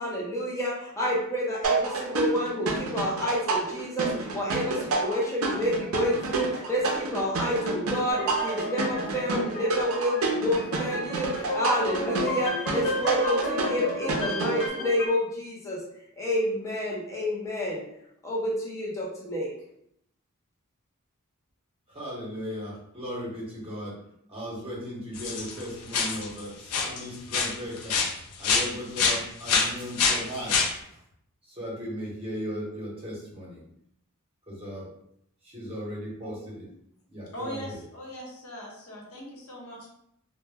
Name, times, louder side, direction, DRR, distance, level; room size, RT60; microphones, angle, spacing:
voice 1, 0.0-15.8 16.2-17.8 18.2-19.5, equal, 15° left, -5 dB, 0.5 m, -29 dB
sound 1, 1.6-14.7, right 3 dB, 65° right, 0.5 m, -29 dB
sound 2, 8.1-15.1, left 1 dB, 40° left, 1.2 m, -33 dB
voice 2, 21.9-24.0 24.3-28.0 28.4-31.0 31.5-33.6 34.5-34.9 35.4-36.7 37.1-37.8, equal, 25° right, -5 dB, 0.8 m, -37 dB
sound 3, 25.1-25.6 25.9-26.4 26.7-27.0 27.3-28.7 29.0-30.7, left 5 dB, 90° left, 0.4 m, -25 dB
voice 3, 37.3-39.9, equal, 75° left, -3 dB, 0.8 m, -40 dB
2.1 x 2.1 x 3.3 m, 0.73 s
head